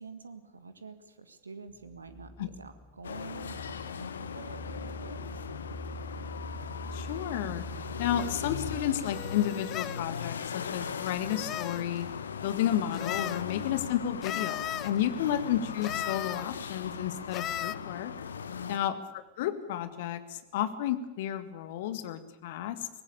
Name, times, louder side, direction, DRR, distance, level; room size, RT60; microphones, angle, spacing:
voice 1, 0.0-5.4 18.6-18.9, right 4 dB, 75° right, 11 dB, 1.8 m, -47 dB
sound 1, 1.7-9.5, equal, ahead, 0.9 m, -44 dB
sound 2, 3.0-18.8, left 6 dB, 70° left, 1.2 m, -39 dB
voice 2, 6.9-7.6 8.0-12.1 12.4-18.1 18.7-19.0 19.4-22.9, left 11 dB, 55° left, 11 dB, 1.9 m, -32 dB
sound 3, 8.2-8.3 9.0-10.0 11.0-11.9 12.9-13.4 14.2-14.9 15.8-16.5 17.3-17.8, left 12 dB, 30° left, 0.8 m, -36 dB
23.0 x 19.0 x 8.6 m, 1.1 s
figure-of-eight pair, 90°, 0 cm